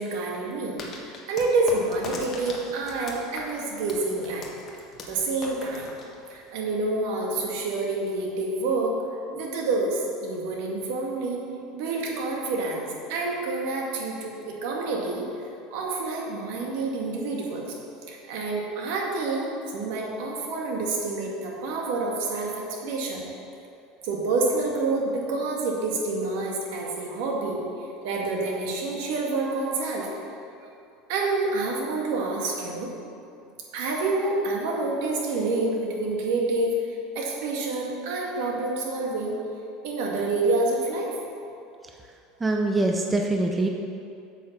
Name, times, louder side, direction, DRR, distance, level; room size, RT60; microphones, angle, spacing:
voice 1, 0.0-4.5 5.1-5.9 6.3-9.0 9.3-11.4 11.7-15.2 15.7-17.7 18.1-23.2 24.0-30.1 31.1-32.9 33.7-39.4 39.8-41.2, right 3 dB, 65° right, -1 dB, 2.1 m, -28 dB
sound 1, 0.8-6.5, left 3 dB, 30° left, 1.3 m, -40 dB
voice 2, 42.4-43.7, right 2 dB, 10° right, 2 dB, 0.5 m, -23 dB
8.5 x 7.7 x 5.9 m, 2.6 s
supercardioid pair, 160°, 0 cm